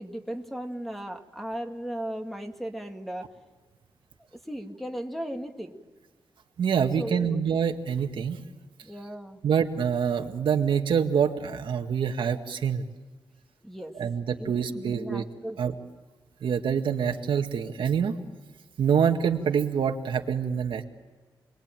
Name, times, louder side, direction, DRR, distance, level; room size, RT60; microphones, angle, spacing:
voice 1, 0.0-3.3 4.5-5.7 7.0-7.4 8.8-9.4 13.6-13.9 14.3-15.8, right 1 dB, ahead, 4 dB, 1.9 m, -36 dB
voice 2, 6.6-8.4 9.4-12.8 13.9-15.2 15.6-15.8 16.4-18.2 18.8-20.8, right 7 dB, 85° right, 5 dB, 1.9 m, -26 dB
29.5 x 22.0 x 9.1 m, 1.3 s
wide cardioid pair, 165°, 8 cm